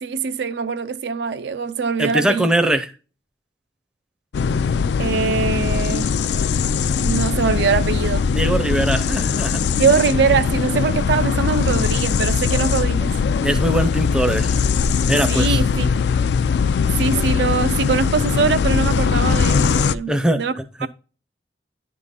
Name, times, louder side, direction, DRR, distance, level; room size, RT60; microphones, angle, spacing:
voice 1, 0.0-2.5 5.0-6.1 7.0-8.3 9.8-13.1 15.3-15.9 17.0-20.5 20.8-20.9, right 5 dB, 70° right, 0.4 m, -22 dB
voice 2, 2.0-2.9 8.3-9.6 13.4-14.6 15.1-15.6 20.1-20.4 20.8-20.9, right 1 dB, 5° right, 0.5 m, -21 dB
sound 1, 4.3-19.9, left 6 dB, 70° left, 0.3 m, -20 dB
10.5 x 3.7 x 4.0 m
head